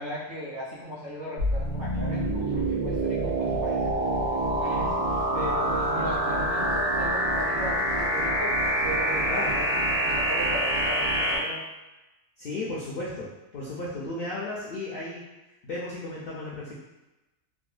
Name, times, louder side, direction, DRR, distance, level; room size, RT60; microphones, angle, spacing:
voice 1, 0.0-11.6, left 1 dB, 65° right, -7 dB, 1.4 m, -37 dB
sound 1, 1.4-11.4, right 1 dB, 85° right, 1.1 m, -26 dB
voice 2, 12.4-16.7, left 2 dB, 65° left, -6 dB, 0.5 m, -35 dB
3.7 x 2.0 x 2.4 m, 1.0 s
omnidirectional pair, 1.4 m